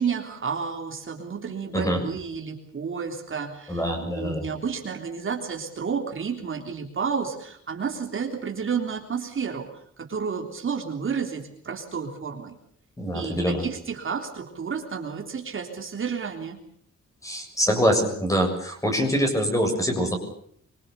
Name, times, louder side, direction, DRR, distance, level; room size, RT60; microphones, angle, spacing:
voice 1, 0.0-9.7 10.0-12.6 13.1-16.6, right 6 dB, 45° right, 3 dB, 3.5 m, -31 dB
voice 2, 3.7-4.5 13.0-13.7 17.2-20.2, equal, 10° left, 4 dB, 7.0 m, -24 dB
25.5 x 24.5 x 6.9 m, 0.64 s
wide cardioid pair, 180°, 29 cm